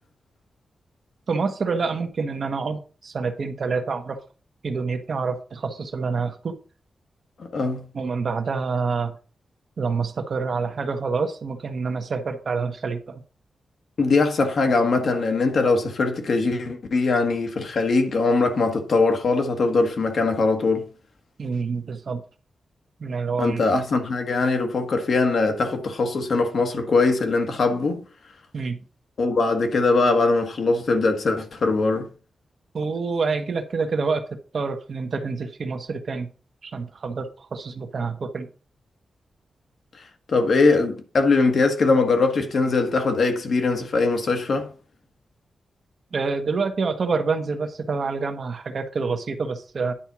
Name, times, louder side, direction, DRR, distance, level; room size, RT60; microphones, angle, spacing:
voice 1, 1.3-4.2 4.6-6.6 7.9-9.1 9.8-13.2 21.4-22.2 23.0-23.6 28.5-28.8 32.7-34.3 34.5-36.3 36.6-38.5 46.1-49.9, right 4 dB, 50° right, 1.2 m, -27 dB
voice 2, 7.4-7.8 14.0-20.9 23.4-28.0 29.2-32.1 40.3-44.7, left 3 dB, 55° left, 1.5 m, -21 dB
10.0 x 4.3 x 6.0 m
wide cardioid pair, 165°, 0 cm